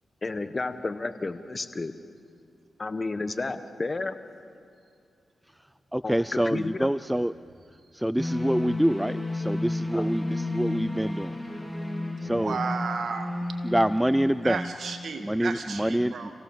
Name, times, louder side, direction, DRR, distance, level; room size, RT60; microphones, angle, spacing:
voice 1, 0.2-1.9 2.8-4.2 6.0-6.9 9.9-10.1, left 3 dB, 40° left, 10 dB, 1.3 m, -31 dB
voice 2, 5.9-7.3 7.9-11.4 12.2-12.6 13.6-14.6 15.2-16.1, equal, 5° right, 15 dB, 0.5 m, -26 dB
sound 1, 8.2-15.0, left 2 dB, 10° left, 2.8 m, -32 dB
voice 3, 12.3-13.4 14.4-16.3, right 5 dB, 70° right, 5 dB, 2.1 m, -33 dB
27.0 x 17.0 x 7.3 m, 2.4 s
cardioid pair, 50°, 0 cm